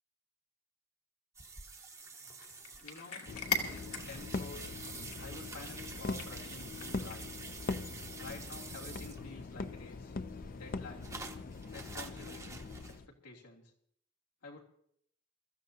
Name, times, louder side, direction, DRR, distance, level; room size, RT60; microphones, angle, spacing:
sound 1, 1.3-9.6 9.9-13.0, right 4 dB, 15° right, 0.9 m, -48 dB
Cat, 2.2-7.4, left 4 dB, 75° left, 2.4 m, -42 dB
voice 1, 2.8-3.2 3.7-4.8 5.2-7.3 8.2-10.1 10.5-11.2 11.7-13.7 14.4-14.6, left 3 dB, 90° left, -2 dB, 3.0 m, -50 dB
sound 2, 3.3-13.1, left 3 dB, 40° left, 0.5 m, -42 dB
24.5 x 14.0 x 2.8 m, 0.69 s
head